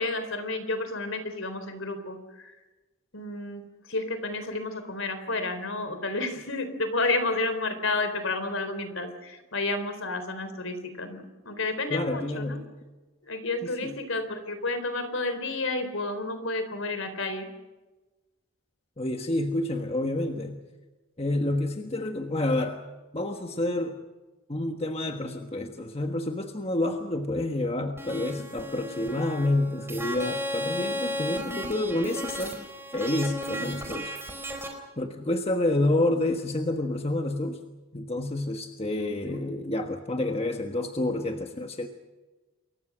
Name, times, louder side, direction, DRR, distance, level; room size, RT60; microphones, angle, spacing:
voice 1, 0.0-2.5 3.1-3.6 3.9-12.6 13.2-17.5 39.0-39.4, left 2 dB, 65° left, 9 dB, 3.9 m, -31 dB
voice 2, 11.9-12.7 13.6-14.0 19.0-20.6 21.2-22.8 23.1-24.0 24.5-32.6 32.9-34.1 35.0-37.6 37.9-41.9, left 1 dB, 25° left, 4 dB, 1.4 m, -28 dB
sound 1, 28.0-34.7, equal, 10° right, 4.4 m, -35 dB
28.5 x 23.5 x 6.3 m, 1.2 s
head